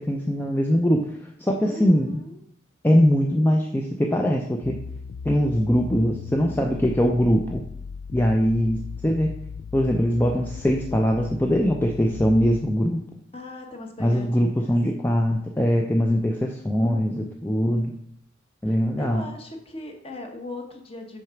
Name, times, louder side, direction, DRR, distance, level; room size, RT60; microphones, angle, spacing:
voice 1, 0.0-2.2 2.8-4.8 5.2-7.6 8.1-9.3 9.7-13.0 14.0-17.9 18.6-19.2, equal, 10° left, 1 dB, 0.5 m, -22 dB
voice 2, 1.6-2.4 13.3-14.7 16.8-17.3 18.6-21.2, left 2 dB, 30° left, 3 dB, 1.1 m, -38 dB
sound 1, 4.6-12.6, left 5 dB, 75° left, 0.3 m, -37 dB
6.3 x 4.8 x 5.8 m, 0.72 s
head